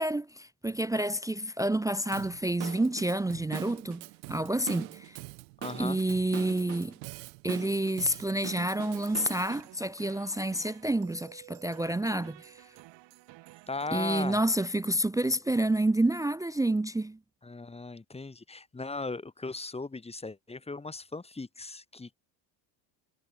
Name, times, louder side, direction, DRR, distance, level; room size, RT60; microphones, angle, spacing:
voice 1, 0.0-5.2 5.8-6.9 7.4-12.6 13.9-17.2, right 1 dB, 5° right, 0.5 m, -29 dB
Drum kit / Drum, 2.1-9.6, right 30 dB, 80° right, 1.8 m, -43 dB
voice 2, 5.6-6.0 13.7-14.4 17.4-22.1, left 3 dB, 10° left, 1.4 m, -37 dB
sound 1, 8.9-14.5, right 18 dB, 60° right, 1.6 m, -53 dB
supercardioid pair, 90°, 50 cm